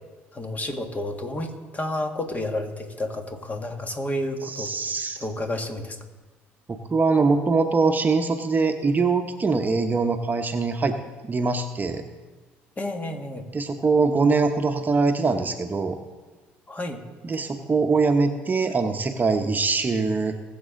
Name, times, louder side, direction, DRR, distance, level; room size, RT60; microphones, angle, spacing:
voice 1, 0.3-4.7 5.2-6.0 12.8-13.5 16.7-17.0, left 1 dB, 25° left, 4 dB, 1.9 m, -30 dB
voice 2, 4.4-5.2 6.7-11.0 11.2-12.0 13.5-16.0 17.2-20.3, right 4 dB, 30° right, 5 dB, 1.0 m, -23 dB
20.5 x 7.4 x 3.9 m, 1.3 s
hypercardioid pair, 60°, 6 cm